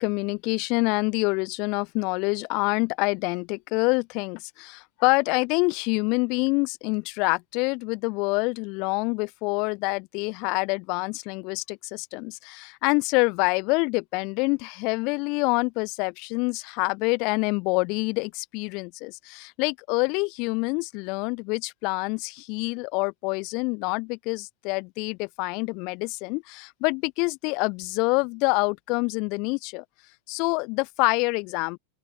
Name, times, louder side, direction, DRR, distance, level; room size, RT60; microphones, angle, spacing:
voice 1, 0.0-29.8 30.3-31.8, left 30 dB, 45° left, 8.0 m, -26 dB
open air
figure-of-eight pair, 90°, 0 cm